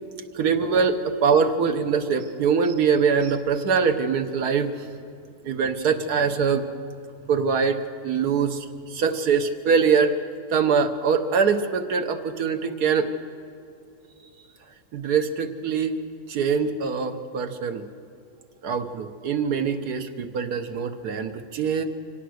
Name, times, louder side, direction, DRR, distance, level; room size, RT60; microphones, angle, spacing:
voice 1, 0.3-4.9 5.4-6.6 7.3-10.1 10.5-13.1 14.9-15.9 16.3-17.8 18.6-21.8, right 6 dB, 85° right, 6 dB, 1.6 m, -23 dB
25.0 x 17.5 x 6.5 m, 2.5 s
omnidirectional pair, 1.6 m